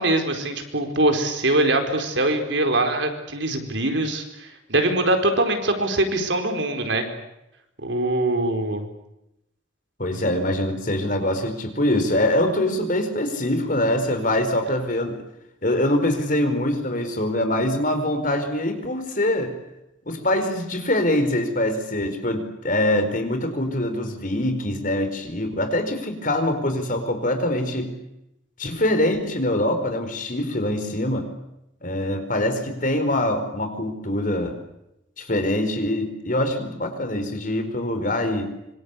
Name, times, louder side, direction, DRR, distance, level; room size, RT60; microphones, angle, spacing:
voice 1, 0.0-7.0 7.8-8.9, right 2 dB, 65° right, 5 dB, 4.6 m, -23 dB
voice 2, 10.0-15.2 15.6-19.5 20.1-27.9 28.6-31.3 31.8-34.6 35.2-38.5, left 1 dB, 45° left, 7 dB, 4.7 m, -24 dB
26.0 x 24.5 x 8.4 m, 0.84 s
head